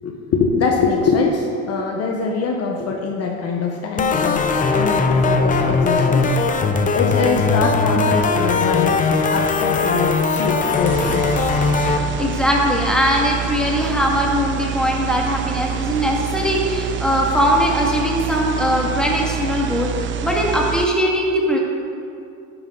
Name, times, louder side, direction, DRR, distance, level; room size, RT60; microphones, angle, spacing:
voice 1, 0.0-4.4 4.7-6.3 6.9-9.0 9.3-11.3, left 4 dB, 45° left, 1 dB, 1.2 m, -23 dB
sound 1, 4.0-12.0, left 4 dB, 20° left, 0.7 m, -19 dB
sound 2, 10.8-20.9, right 10 dB, 35° right, 0.5 m, -27 dB
voice 2, 11.8-21.6, equal, ahead, -2 dB, 2.1 m, -20 dB
12.0 x 11.0 x 3.9 m, 2.5 s
supercardioid pair, 115°, 35 cm